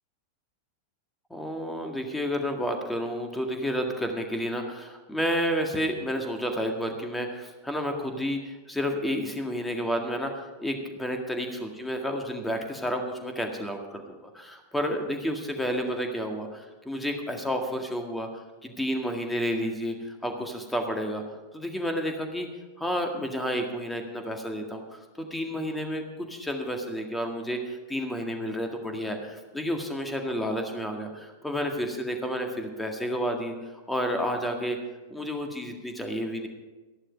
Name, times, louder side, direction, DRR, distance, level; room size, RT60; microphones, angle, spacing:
voice 1, 1.3-21.2 21.5-22.5 22.8-26.0 26.3-33.6 33.9-34.8 35.1-36.5, equal, 5° left, 3 dB, 1.8 m, -31 dB
14.0 x 11.0 x 5.2 m, 1.2 s
figure-of-eight pair, 90°, 0 cm